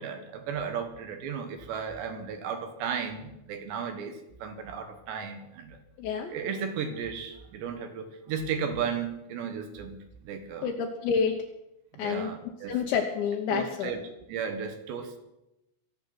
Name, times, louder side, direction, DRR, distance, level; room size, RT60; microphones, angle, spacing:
voice 1, 0.0-5.8 6.3-10.7 12.0-12.8 13.5-15.2, right 6 dB, 70° right, 6 dB, 3.3 m, -35 dB
voice 2, 6.0-6.3 10.6-11.4 12.0-14.0, left 6 dB, 75° left, 2 dB, 3.1 m, -29 dB
24.0 x 8.2 x 6.0 m, 0.89 s
omnidirectional pair, 5.8 m